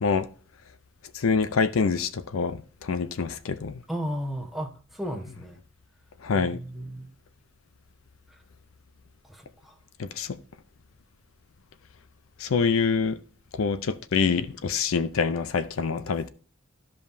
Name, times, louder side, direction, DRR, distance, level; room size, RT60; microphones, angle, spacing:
voice 1, 1.1-3.8 6.2-6.6 10.0-10.4 12.4-13.2 13.5-16.3, left 5 dB, 85° left, 0.5 m, -26 dB
voice 2, 3.9-5.6 6.3-7.1 8.3-8.4 9.2-9.8, equal, ahead, 1.0 m, -35 dB
13.5 x 5.3 x 2.6 m
head